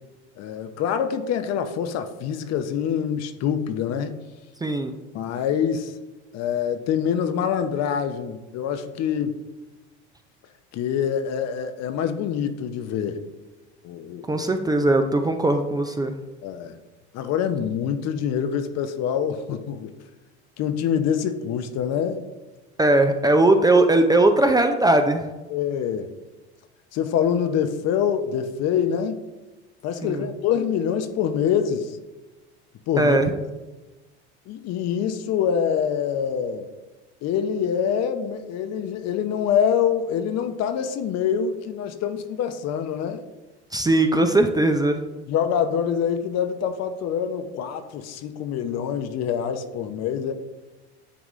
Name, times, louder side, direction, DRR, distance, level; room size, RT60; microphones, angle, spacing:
voice 1, 0.4-4.1 5.1-5.9 6.3-9.4 10.7-13.2 13.8-14.4 16.4-16.8 17.1-19.9 20.6-22.2 25.5-26.1 26.9-29.2 29.8-32.0 32.9-33.2 34.5-36.7 37.2-43.2 45.3-50.3, left 8 dB, 50° left, 9 dB, 0.7 m, -25 dB
voice 2, 4.6-4.9 14.3-16.2 22.8-25.3 30.0-30.3 33.0-33.3 43.7-45.0, right 2 dB, 10° right, 6 dB, 0.5 m, -19 dB
9.8 x 3.6 x 3.1 m, 1.1 s
hypercardioid pair, 80°, 33 cm